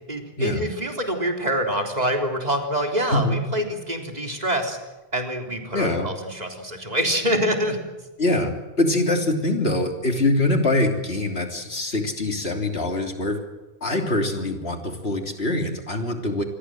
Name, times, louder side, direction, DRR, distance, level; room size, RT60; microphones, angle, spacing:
voice 1, 0.1-4.8 5.1-7.8, equal, 40° right, 2 dB, 3.8 m, -25 dB
voice 2, 5.7-6.1 8.2-8.5 8.8-13.4 13.8-16.4, left 2 dB, 75° left, 3 dB, 3.6 m, -23 dB
27.0 x 21.0 x 7.7 m, 1.1 s
omnidirectional pair, 1.1 m